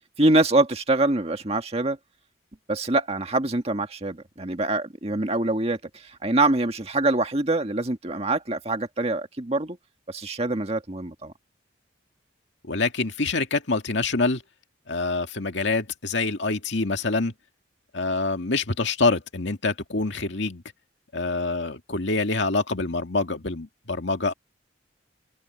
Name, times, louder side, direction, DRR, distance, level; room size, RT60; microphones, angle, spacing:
voice 1, 0.2-2.0 2.7-9.8 10.1-11.3, right 2 dB, 35° right, 1.7 m, -24 dB
voice 2, 12.7-14.4 14.9-17.3 17.9-20.6 21.1-24.3, left 3 dB, 70° left, 2.1 m, -26 dB
head